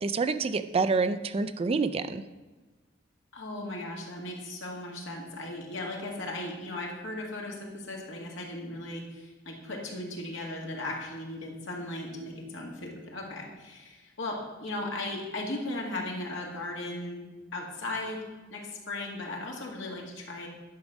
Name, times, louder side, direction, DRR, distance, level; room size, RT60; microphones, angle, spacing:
voice 1, 0.0-2.2, right 4 dB, 30° right, 11 dB, 0.4 m, -27 dB
voice 2, 3.3-18.2 18.5-20.5, left 2 dB, 70° left, -1 dB, 2.1 m, -37 dB
10.5 x 5.3 x 6.1 m, 1.2 s
head